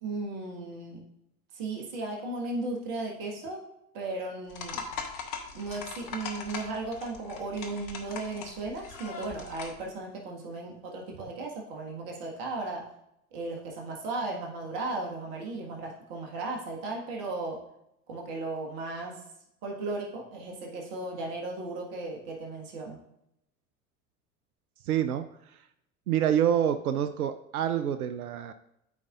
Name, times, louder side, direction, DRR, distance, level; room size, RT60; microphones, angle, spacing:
voice 1, 0.0-1.0 1.5-3.7 3.9-4.9 5.5-12.9 13.3-17.6 18.1-19.2 19.6-23.0, right 2 dB, 55° right, -1 dB, 1.8 m, -36 dB
sound 1, 4.5-9.8, left 5 dB, 45° left, 1.4 m, -40 dB
voice 2, 24.8-25.6 26.1-28.5, right 9 dB, 75° right, 11 dB, 0.6 m, -27 dB
13.0 x 5.0 x 2.5 m, 0.80 s
figure-of-eight pair, 75°, 45 cm